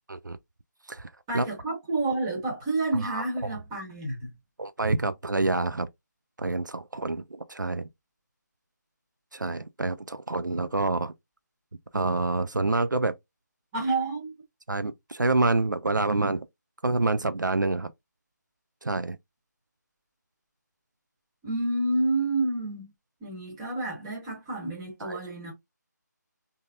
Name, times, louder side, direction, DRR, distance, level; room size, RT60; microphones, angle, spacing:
voice 1, 1.3-4.3 13.7-14.3 21.4-22.9 23.2-25.5, right 2 dB, 15° right, 1.1 m, -29 dB
voice 2, 3.0-3.6 4.6-5.9 6.4-7.9 9.3-11.1 11.9-13.1 14.7-16.5 16.8-17.9 18.8-19.2 25.0-25.2, right 3 dB, 80° right, 0.4 m, -27 dB
3.7 x 2.7 x 2.2 m
figure-of-eight pair, 155°, 10 cm